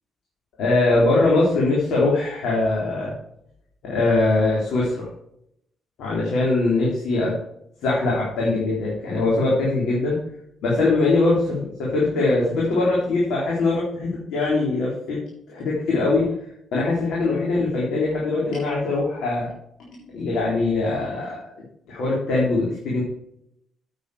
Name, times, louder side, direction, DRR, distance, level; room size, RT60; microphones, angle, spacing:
voice 1, 0.6-3.1 3.8-5.1 6.0-7.3 7.8-10.2 10.6-15.2 15.5-16.2 16.7-19.5 20.1-21.4 21.9-23.0, left 2 dB, 80° left, -5 dB, 3.7 m, -22 dB
9.0 x 8.3 x 4.9 m, 0.75 s
cardioid pair, 90°, 0 cm